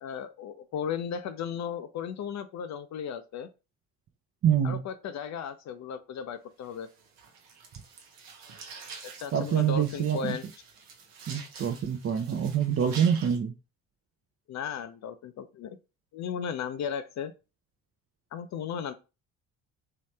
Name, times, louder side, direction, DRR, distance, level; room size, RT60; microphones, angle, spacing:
voice 1, 0.0-3.5 4.6-6.9 9.2-10.4 14.5-15.8 16.1-17.3 18.3-18.9, left 7 dB, 45° left, 0.5 m, -35 dB
voice 2, 4.4-4.8 9.3-10.4 11.3-13.5, right 8 dB, 35° right, 0.5 m, -26 dB
sound 1, 6.6-13.4, right 5 dB, 80° right, 0.9 m, -47 dB
3.1 x 2.8 x 3.2 m
hypercardioid pair, 55°, 40 cm